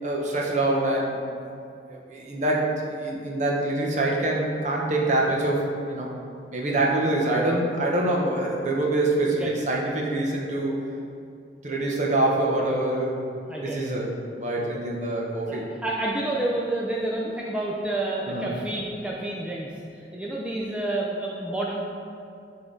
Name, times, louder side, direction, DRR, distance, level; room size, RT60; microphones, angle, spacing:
voice 1, 0.0-1.2 1.9-5.6 5.9-6.1 6.5-10.7 11.6-13.1 13.6-14.1 14.4-15.7 18.3-18.5, right 2 dB, 40° right, -2 dB, 0.9 m, -25 dB
voice 2, 15.5-21.9, right 2 dB, 5° right, -4 dB, 0.4 m, -29 dB
8.0 x 3.8 x 3.7 m, 2.5 s
head